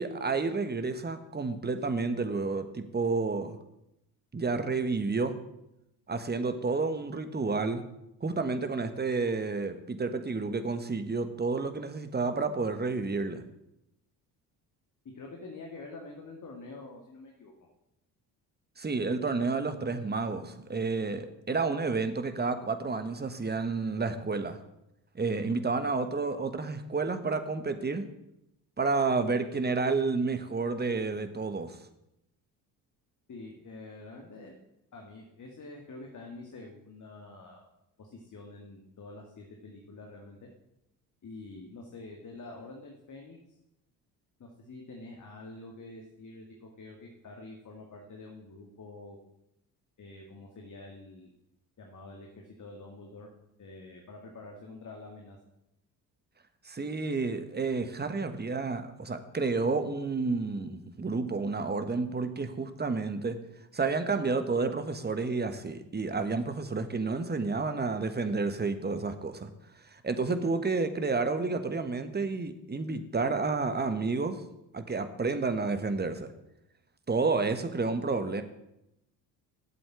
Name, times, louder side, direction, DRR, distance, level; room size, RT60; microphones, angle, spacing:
voice 1, 0.0-3.6 4.3-5.3 6.1-7.8 8.2-13.4 18.8-24.6 25.1-28.0 28.8-31.8 56.6-63.4 63.7-69.5 69.9-74.4 74.7-76.3 77.1-78.4, right 4 dB, 20° right, 9 dB, 1.5 m, -30 dB
voice 2, 15.1-17.5 25.3-25.6 33.3-34.6 34.9-37.6 38.0-40.5 41.2-43.4 44.4-49.2 50.0-51.3 51.8-53.3 53.6-55.4, left 2 dB, 40° left, 1 dB, 2.2 m, -47 dB
8.3 x 7.9 x 8.1 m, 0.86 s
hypercardioid pair, 50°, 48 cm